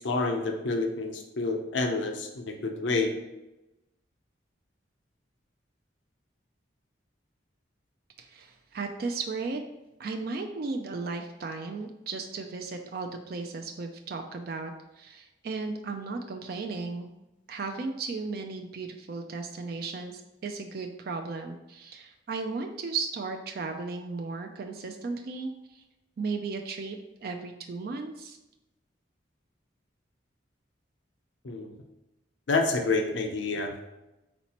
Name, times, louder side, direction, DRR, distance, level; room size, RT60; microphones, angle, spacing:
voice 1, 0.0-3.1 31.4-31.7 32.5-33.7, left 3 dB, 75° left, 4 dB, 0.6 m, -28 dB
voice 2, 8.2-9.6 10.0-17.1 17.5-25.8 26.2-28.4, right 4 dB, 50° right, 5 dB, 0.3 m, -35 dB
4.4 x 4.0 x 2.9 m, 0.98 s
head